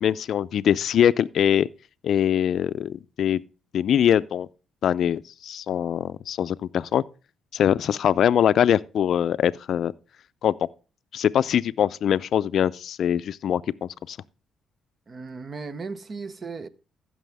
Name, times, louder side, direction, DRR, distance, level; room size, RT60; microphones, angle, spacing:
voice 1, 0.0-1.7 2.0-3.4 3.7-4.5 4.8-7.0 7.5-9.9 10.4-10.5 11.1-14.2, left 9 dB, 65° left, 0.4 m, -22 dB
voice 2, 15.1-16.7, right 4 dB, 40° right, 0.7 m, -36 dB
15.0 x 6.1 x 3.4 m
cardioid pair, 90°, 0 cm